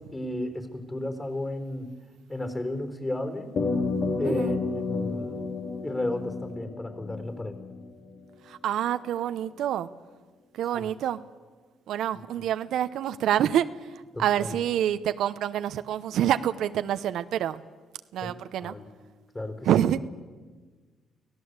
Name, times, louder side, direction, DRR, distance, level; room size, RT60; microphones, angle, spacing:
voice 1, 0.0-1.9 2.3-3.5 4.2-5.5 5.8-7.6 10.7-10.9 12.1-12.2 14.1-14.6 18.2-18.3 18.6-18.9 19.3-19.7, left 1 dB, 20° left, 7 dB, 4.0 m, -33 dB
sound 1, 3.6-8.2, left 4 dB, 60° left, 3.6 m, -31 dB
voice 2, 8.5-9.9 10.5-11.2 11.9-13.7 14.2-17.6 18.1-18.7 19.7-20.0, right 11 dB, 80° right, 12 dB, 0.8 m, -27 dB
24.0 x 17.0 x 8.1 m, 1.4 s
cardioid pair, 90°, 0 cm